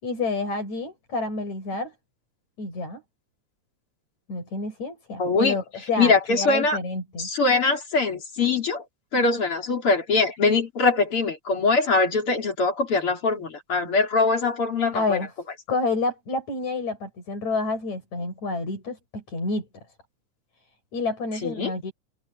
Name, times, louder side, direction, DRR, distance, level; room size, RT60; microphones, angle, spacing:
voice 1, 0.0-1.9 2.6-3.0 4.3-7.3 14.9-15.3 15.7-19.7 20.9-21.9, left 3 dB, 70° left, 8.8 m, -29 dB
voice 2, 5.2-5.6 6.0-6.8 7.2-8.8 9.1-15.2 21.4-21.7, left 3 dB, 45° left, 4.4 m, -22 dB
open air
omnidirectional pair, 3.4 m